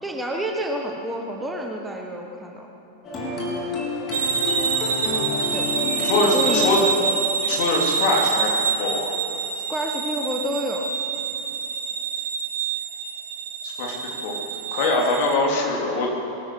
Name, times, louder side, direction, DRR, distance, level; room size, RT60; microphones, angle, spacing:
voice 1, 0.0-2.7 5.5-5.7 6.2-7.0 9.7-10.8, equal, 5° right, 1 dB, 1.4 m, -29 dB
sound 1, 3.0-8.6, left 1 dB, 30° left, 4.0 m, -29 dB
sound 2, 4.1-15.3, right 5 dB, 65° right, 1.5 m, -26 dB
voice 2, 6.0-6.8 7.4-8.5 8.8-9.1 13.6-13.9 14.2-14.3 14.7-16.1, left 2 dB, 50° left, -1 dB, 3.2 m, -23 dB
22.0 x 12.5 x 4.9 m, 3.0 s
figure-of-eight pair, 90°, 0 cm